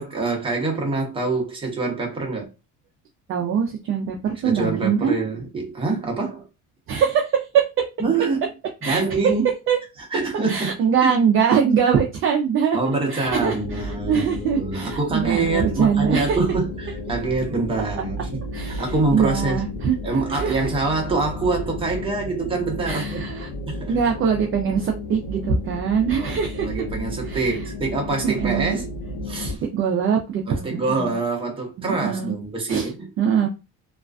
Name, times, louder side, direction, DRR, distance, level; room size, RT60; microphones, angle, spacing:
voice 1, 0.0-2.5 4.4-6.4 8.0-8.4 8.8-9.4 10.1-11.1 12.7-18.4 18.7-19.6 20.0-23.3 23.7-23.9 26.2-28.9 29.2-29.6 30.5-33.1, right 3 dB, 15° right, 0.7 m, -25 dB
voice 2, 3.3-5.2 6.9-7.7 8.8-9.2 9.7-9.8 10.5-16.4 18.5-20.0 20.3-20.5 22.8-23.5 23.9-26.7 27.2-27.5 28.2-28.8 29.5-31.1 31.8-32.3 32.7-32.9 33.2-33.5, right 7 dB, 40° right, 0.4 m, -22 dB
sound 1, 13.2-29.6, left 1 dB, 75° left, 0.5 m, -33 dB
2.4 x 2.2 x 2.3 m
cardioid pair, 140°, 33 cm